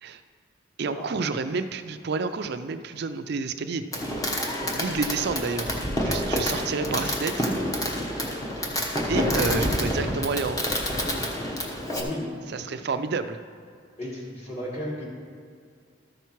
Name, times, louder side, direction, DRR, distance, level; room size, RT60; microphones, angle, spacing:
voice 1, 0.8-3.8 4.8-5.7 6.0-7.5 9.1-10.8 12.5-13.4, right 4 dB, 55° right, 10 dB, 0.4 m, -29 dB
Fireworks, 3.9-12.0, equal, 20° left, 1.0 m, -28 dB
voice 2, 11.8-12.3 14.0-15.1, left 1 dB, 35° left, -5 dB, 2.3 m, -34 dB
13.0 x 5.7 x 4.5 m, 2.3 s
head